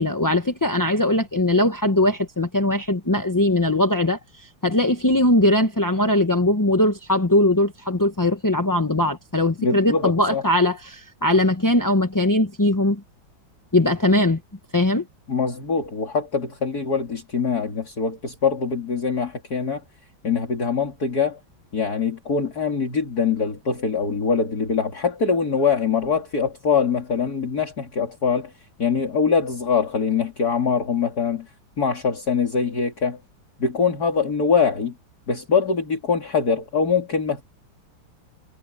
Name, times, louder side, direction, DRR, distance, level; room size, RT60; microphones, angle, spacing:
voice 1, 0.0-13.0 13.7-14.4 14.7-15.1, left 1 dB, 15° left, 0.7 m, -20 dB
voice 2, 9.6-10.4 15.3-19.8 20.2-21.4 21.7-28.5 28.8-31.5 31.8-33.2 33.6-34.9 35.3-37.4, left 5 dB, 50° left, 3.4 m, -23 dB
omnidirectional pair, 2.2 m